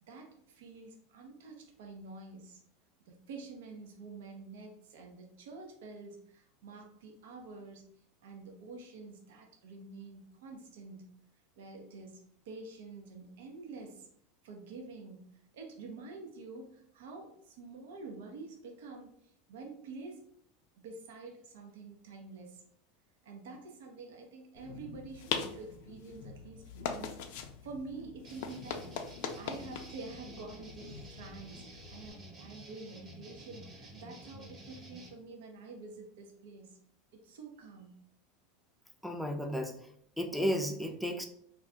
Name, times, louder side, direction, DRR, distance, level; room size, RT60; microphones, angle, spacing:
voice 1, 0.0-2.6 3.0-7.9 8.2-11.1 11.6-14.1 14.4-15.3 15.5-20.2 20.8-22.6 23.2-36.8 37.1-38.0, right 3 dB, 80° right, 2 dB, 0.6 m, -48 dB
sound 1, 24.5-32.1, left 7 dB, 70° left, 0.3 m, -42 dB
sound 2, 28.2-35.1, right 1 dB, 30° right, 0.9 m, -51 dB
voice 2, 39.0-39.9 40.2-41.3, equal, ahead, 4 dB, 0.4 m, -33 dB
2.4 x 2.2 x 3.7 m, 0.66 s
supercardioid pair, 125°, 0 cm